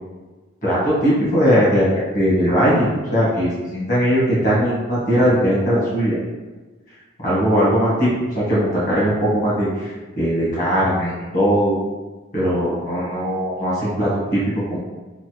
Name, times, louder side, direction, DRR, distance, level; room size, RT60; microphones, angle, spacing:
voice 1, 0.6-1.9 2.1-6.2 7.2-11.7 12.3-14.8, equal, 35° left, -9 dB, 1.4 m, -19 dB
3.7 x 2.0 x 3.0 m, 1.3 s
head